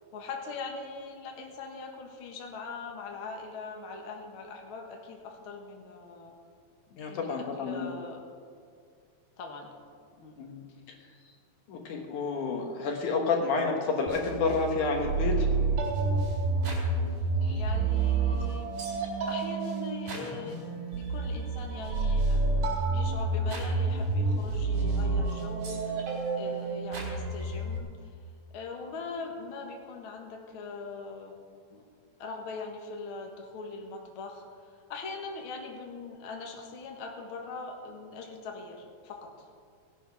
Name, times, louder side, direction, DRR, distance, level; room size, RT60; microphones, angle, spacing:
voice 1, 0.1-6.4 7.1-8.2 9.4-9.7 10.2-10.4 17.5-18.7 19.3-20.6 20.9-22.4 22.9-27.9 28.5-31.4 31.7-31.9 32.2-39.5, left 4 dB, 45° left, 1 dB, 2.0 m, -41 dB
voice 2, 6.9-7.9 10.4-10.6 11.7-15.5 17.4-17.6, left 4 dB, 65° left, 2 dB, 2.7 m, -30 dB
sound 1, 14.1-27.8, right 3 dB, 80° right, 5.4 m, -29 dB
18.0 x 9.6 x 6.1 m, 2.2 s
omnidirectional pair, 3.9 m